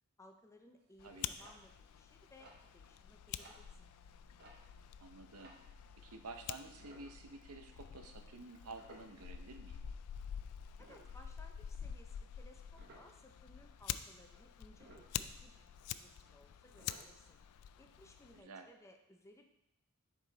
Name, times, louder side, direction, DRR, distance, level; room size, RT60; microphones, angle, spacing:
voice 1, 0.2-3.9 10.8-15.6 15.9-17.4 17.8-19.5, left 1 dB, 15° left, 4 dB, 0.5 m, -62 dB
sound 1, 0.8-6.0 6.8-7.8 8.1-8.3 8.7-10.0 10.4-13.3 13.7-14.2 14.5-16.5 16.8-17.6 17.9-18.0 18.2-18.4 18.8-18.9, right 2 dB, 45° right, 1.1 m, -62 dB
Fire, 1.0-18.4, left 9 dB, 85° left, 0.3 m, -48 dB
voice 2, 5.0-5.6 6.0-9.8 18.3-18.7, right 3 dB, 75° right, 6 dB, 0.7 m, -51 dB
7.3 x 4.8 x 4.0 m, 0.86 s
head